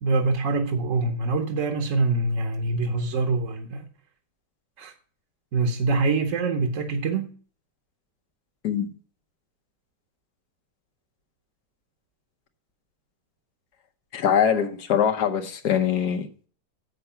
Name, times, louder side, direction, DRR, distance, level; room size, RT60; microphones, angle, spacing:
voice 1, 0.0-3.9 4.8-4.9 5.5-7.3, right 3 dB, 55° right, 1.1 m, -24 dB
voice 2, 14.1-16.3, left 8 dB, 80° left, 1.5 m, -23 dB
7.9 x 6.8 x 5.6 m
omnidirectional pair, 1.8 m